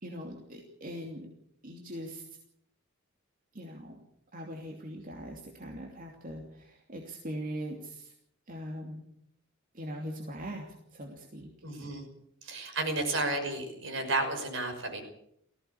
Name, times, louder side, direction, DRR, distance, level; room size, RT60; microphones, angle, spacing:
voice 1, 0.0-1.3 1.6-2.2 3.5-4.0 4.3-8.1 8.5-9.0 9.7-10.7 10.9-11.5 11.8-11.9 12.5-12.7, equal, 40° right, 1 dB, 2.9 m, -41 dB
voice 2, 11.6-12.1 12.4-15.0, right 2 dB, 65° right, 5 dB, 5.9 m, -32 dB
18.5 x 16.5 x 8.5 m, 0.73 s
head